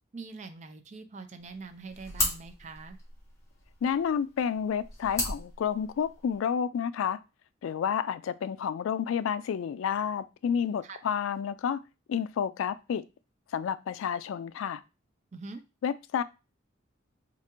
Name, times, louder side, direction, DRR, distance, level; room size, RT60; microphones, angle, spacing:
voice 1, 0.1-3.0 10.8-11.0 15.3-15.6, right 4 dB, 35° right, 0.4 m, -43 dB
sound 1, 1.4-6.4, left 1 dB, 15° left, 1.1 m, -37 dB
voice 2, 3.8-7.2 7.6-11.8 12.1-13.0 13.5-14.8 15.8-16.2, left 7 dB, 85° left, 0.3 m, -30 dB
4.5 x 2.4 x 2.9 m
head